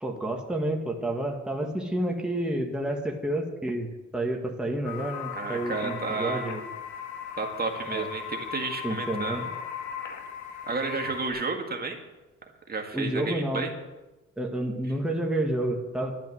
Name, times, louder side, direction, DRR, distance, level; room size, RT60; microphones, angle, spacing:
voice 1, 0.0-6.6 7.9-8.1 8.8-9.4 12.9-13.7 14.4-16.2, right 1 dB, 5° right, 0 dB, 1.9 m, -30 dB
sound 1, 4.8-11.3, left 8 dB, 80° left, 2.2 m, -37 dB
voice 2, 5.3-6.5 7.4-9.5 10.6-12.0 12.7-13.7, right 4 dB, 30° right, 3 dB, 2.0 m, -31 dB
12.0 x 9.4 x 7.9 m, 1.1 s
cardioid pair, 90°, 30 cm